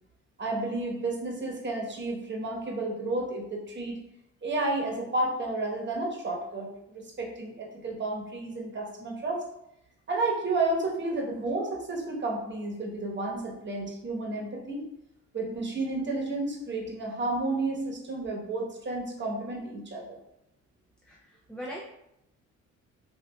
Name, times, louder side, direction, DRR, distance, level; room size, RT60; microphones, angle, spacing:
voice 1, 0.4-4.0 4.4-9.4 10.1-14.9 15.3-20.2, right 2 dB, 40° right, -1 dB, 1.1 m, -31 dB
voice 2, 21.0-21.8, equal, 5° left, -4 dB, 0.5 m, -40 dB
5.2 x 2.5 x 2.2 m, 0.82 s
cardioid pair, 90°, 30 cm